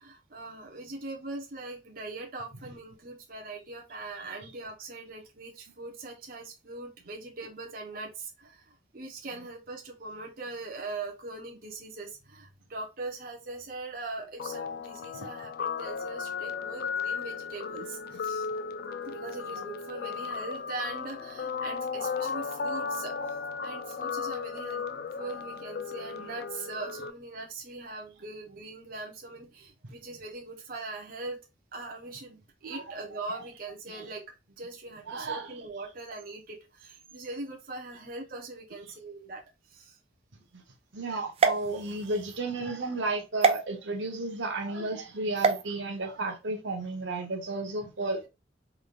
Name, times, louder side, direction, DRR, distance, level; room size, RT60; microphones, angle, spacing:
voice 1, 0.0-18.5 19.0-24.8 25.2-31.4 31.7-34.2 34.6-40.0 41.1-41.2, right 3 dB, 50° right, 1.0 m, -41 dB
Guitar, 14.4-27.1, left 5 dB, 55° left, 0.4 m, -35 dB
voice 2, 35.1-35.5 40.5-40.6 40.9-48.3, right 2 dB, 80° right, 1.0 m, -33 dB
Coconut Pop, 41.3-42.4 43.4-43.6 45.4-45.6, right 5 dB, 30° right, 0.4 m, -25 dB
3.6 x 3.5 x 2.5 m
head